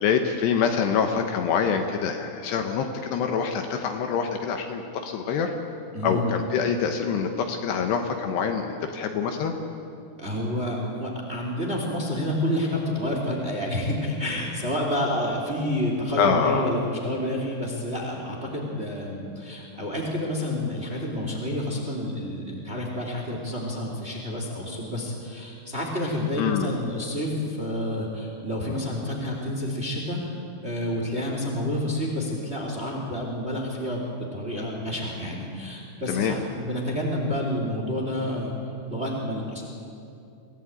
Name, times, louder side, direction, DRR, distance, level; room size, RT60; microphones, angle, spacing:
voice 1, 0.0-5.5 6.0-9.5 16.2-16.7 26.4-26.7 36.1-36.3, left 6 dB, 70° left, 5 dB, 3.0 m, -25 dB
voice 2, 5.9-6.3 10.2-34.0 34.3-38.5 38.9-39.6, left 1 dB, 15° right, 0 dB, 2.4 m, -29 dB
25.0 x 16.5 x 8.9 m, 2.6 s
omnidirectional pair, 5.5 m